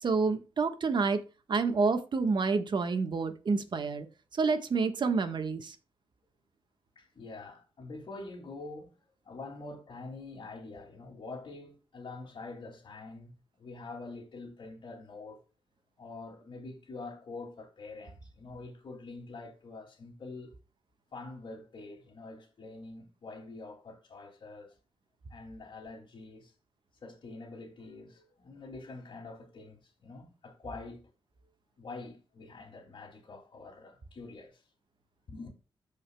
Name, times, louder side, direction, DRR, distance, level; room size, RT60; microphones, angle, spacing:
voice 1, 0.0-1.2 1.5-4.1 4.3-5.7, right 4 dB, 55° right, 1.3 m, -28 dB
voice 2, 6.9-9.0 9.2-15.4 16.0-20.5 21.1-24.7 25.3-26.5 27.0-31.0 31.4-31.5 31.8-34.6 35.3-35.5, left 3 dB, 60° left, 2.4 m, -45 dB
14.5 x 5.0 x 2.3 m
cardioid pair, 75°, 9 cm